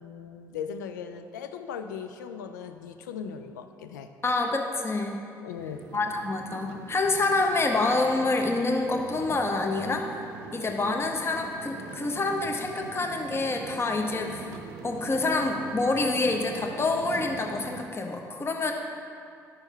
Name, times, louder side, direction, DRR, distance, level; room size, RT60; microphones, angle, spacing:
voice 1, 0.0-4.1 5.4-5.9, left 7 dB, 75° left, 8 dB, 0.4 m, -38 dB
voice 2, 4.2-5.2 5.9-10.1 10.5-14.5 14.8-18.7, left 3 dB, 25° left, 3 dB, 0.9 m, -27 dB
sound 1, 5.6-17.9, right 4 dB, 65° right, 0.6 m, -42 dB
10.5 x 6.2 x 3.2 m, 2.4 s
figure-of-eight pair, 45°, 10 cm